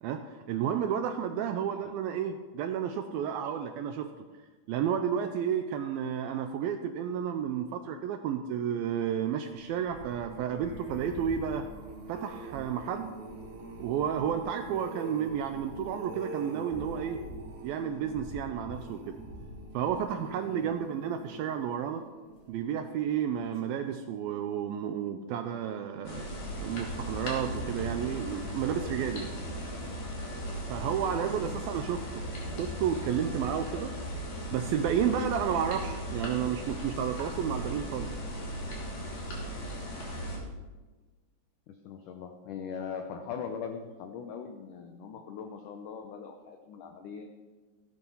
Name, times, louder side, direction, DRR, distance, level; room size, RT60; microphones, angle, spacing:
voice 1, 0.0-4.1 4.7-11.7 12.1-13.1 13.8-17.2 17.6-19.2 19.7-22.0 22.5-26.3 26.6-29.3 30.7-32.0 32.6-33.9 34.5-38.1, right 8 dB, 80° right, 7 dB, 2.2 m, -31 dB
sound 1, 9.5-22.8 23.3-23.7 23.9-24.0, right 2 dB, 50° right, 3.0 m, -44 dB
sound 2, 26.0-40.4, equal, 45° left, 3.7 m, -37 dB
voice 2, 41.7-47.3, left 6 dB, 85° left, 5 dB, 1.8 m, -41 dB
15.5 x 10.5 x 5.6 m, 1.3 s
omnidirectional pair, 4.9 m